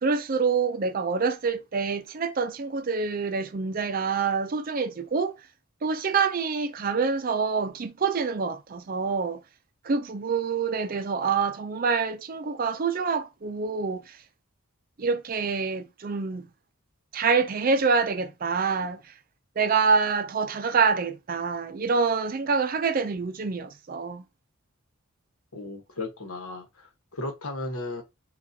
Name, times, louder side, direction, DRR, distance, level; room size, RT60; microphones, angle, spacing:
voice 1, 0.0-5.3 5.8-9.4 9.8-14.2 15.0-16.5 17.1-19.0 19.6-24.2, right 5 dB, 40° right, 0.4 m, -26 dB
voice 2, 25.5-28.0, left 2 dB, 75° left, 1.2 m, -35 dB
6.1 x 2.4 x 2.8 m
head